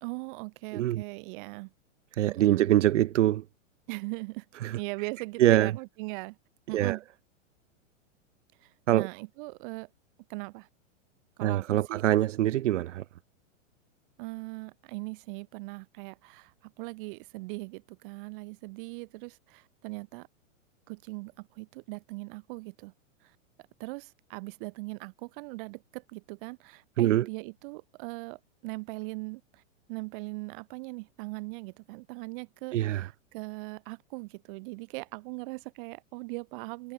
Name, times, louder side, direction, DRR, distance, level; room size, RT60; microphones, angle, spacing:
voice 1, 0.0-1.7 2.3-2.7 3.9-4.4 4.7-6.4 6.7-7.0 8.6-9.9 10.3-10.7 11.4-12.1 14.2-20.3 20.9-22.9 23.8-29.6 29.9-36.9, right 27 dB, 40° right, 2.3 m, -40 dB
voice 2, 0.7-1.0 2.2-3.4 4.6-4.8 5.4-5.7 6.7-7.0 8.9-9.1 11.4-13.0 27.0-27.3 32.7-33.1, right 13 dB, 70° right, 1.6 m, -24 dB
hypercardioid pair, 150°, 38 cm